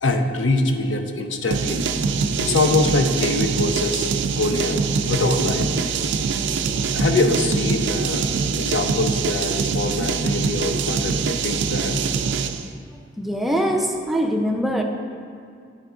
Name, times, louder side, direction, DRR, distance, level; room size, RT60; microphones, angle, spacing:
voice 1, 0.0-1.8 2.4-5.7 6.9-8.3 8.6-12.0, left 2 dB, 75° left, 5 dB, 0.5 m, -23 dB
sound 1, 1.5-12.7, right 5 dB, 65° right, 0.3 m, -24 dB
voice 2, 13.2-14.8, equal, ahead, 2 dB, 0.4 m, -22 dB
9.9 x 3.5 x 3.7 m, 2.3 s
head